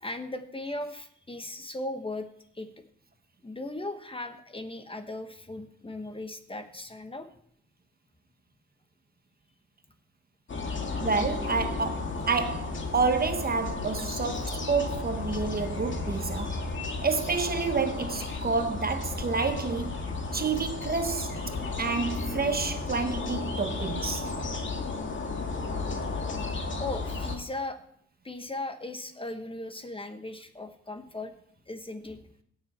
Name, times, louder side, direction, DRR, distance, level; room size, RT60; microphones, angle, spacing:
voice 1, 0.0-2.3 2.5-2.7 3.4-7.3 16.4-16.5 20.0-20.1 26.8-27.8 28.2-31.3 31.7-32.2, left 2 dB, 20° left, 1.2 m, -37 dB
sound 1, 10.5-27.4, left 3 dB, 40° left, 2.3 m, -33 dB
voice 2, 11.0-16.6 17.0-20.0 20.3-21.4 21.8-24.3, right 4 dB, 30° right, 1.1 m, -29 dB
17.0 x 7.3 x 4.3 m
cardioid pair, 90°, 30 cm